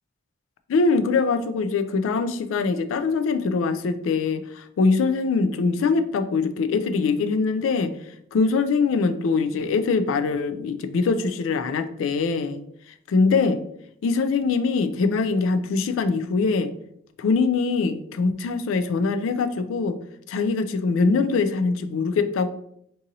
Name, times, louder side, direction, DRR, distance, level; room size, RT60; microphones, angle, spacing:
voice 1, 0.7-7.9 8.3-12.6 13.1-13.6 14.0-16.7 17.2-20.0 20.3-22.5, left 4 dB, 85° left, 10 dB, 0.3 m, -23 dB
3.9 x 2.7 x 2.6 m, 0.71 s
head